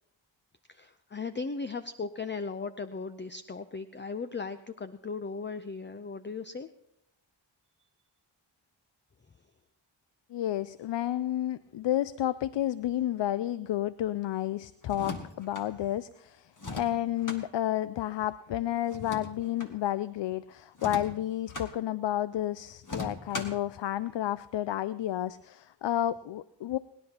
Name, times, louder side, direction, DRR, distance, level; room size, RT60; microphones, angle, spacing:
voice 1, 0.7-6.7, left 4 dB, 25° left, 10 dB, 0.6 m, -37 dB
voice 2, 10.3-26.8, left 12 dB, 65° left, 16 dB, 0.5 m, -31 dB
sound 1, 14.8-15.7 16.6-17.4 18.9-19.7 20.7-21.7 22.8-23.7, left 2 dB, 40° left, 1.9 m, -39 dB
29.5 x 10.5 x 2.9 m, 0.82 s
cardioid pair, 40°, 48 cm